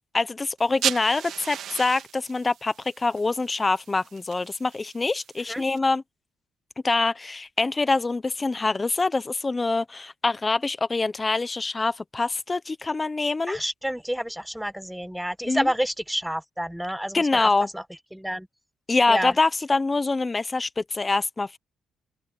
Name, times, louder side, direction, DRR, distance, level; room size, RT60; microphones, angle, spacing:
voice 1, 0.1-6.0 6.8-13.6 15.4-15.7 17.1-17.7 18.9-21.6, left 3 dB, 25° left, 1.1 m, -25 dB
sound 1, 0.6-5.8, right 10 dB, 75° right, 3.1 m, -36 dB
voice 2, 13.5-17.5 17.7-17.8 18.1-18.5 19.1-19.3, equal, 5° right, 1.5 m, -29 dB
open air
cardioid pair, 90°, 0 cm